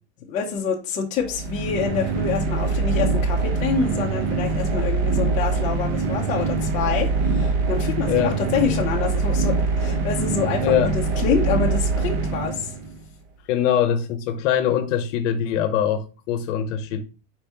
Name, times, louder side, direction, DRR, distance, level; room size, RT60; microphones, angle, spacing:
voice 1, 0.3-12.7, left 6 dB, 20° left, 0.5 m, -27 dB
sound 1, 1.2-13.0, right 4 dB, 55° right, 1.0 m, -23 dB
voice 2, 8.0-8.4 10.6-11.3 13.5-17.0, left 9 dB, 65° left, 0.7 m, -23 dB
4.4 x 2.7 x 3.4 m
supercardioid pair, 160°, 39 cm